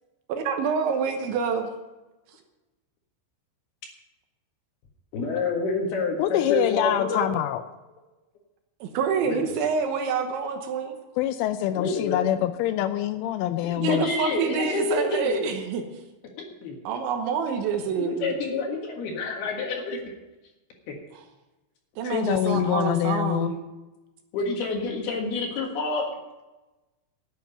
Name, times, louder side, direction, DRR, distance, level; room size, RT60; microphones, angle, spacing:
voice 1, 0.3-1.7 8.8-11.0 13.8-15.8 16.8-18.4 22.0-23.6, right 6 dB, 75° right, 5 dB, 3.2 m, -27 dB
voice 2, 5.1-7.2 9.2-9.5 11.7-12.5 13.9-15.6 16.6-16.8 18.0-20.0 20.9-21.0 22.5-22.6 24.3-26.1, left 3 dB, 60° left, 1 dB, 3.1 m, -28 dB
voice 3, 6.2-7.6 11.2-14.1 22.0-23.5, left 12 dB, 85° left, 10 dB, 2.9 m, -25 dB
12.0 x 7.7 x 9.0 m, 1.1 s
omnidirectional pair, 5.9 m